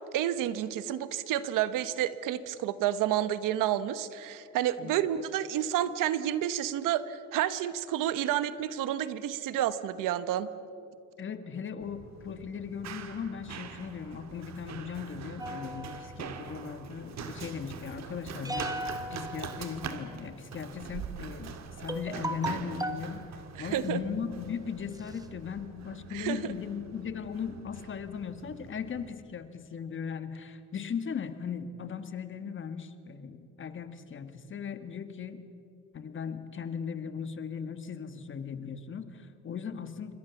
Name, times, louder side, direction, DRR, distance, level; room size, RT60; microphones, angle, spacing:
voice 1, 0.1-10.5 23.6-24.0 26.1-26.5, right 11 dB, 85° right, 14 dB, 1.2 m, -30 dB
voice 2, 11.2-35.4 35.9-40.1, left 6 dB, 40° left, 9 dB, 1.7 m, -38 dB
Run, 11.8-29.1, right 6 dB, 60° right, 2.2 m, -44 dB
sound 1, 15.4-16.7 18.4-20.2 21.2-21.3 21.9-23.1 23.8-24.1 24.6-24.7 24.9-25.6, right 1 dB, 10° right, 1.5 m, -38 dB
27.5 x 24.0 x 7.2 m, 2.7 s
cardioid pair, 125°, 31 cm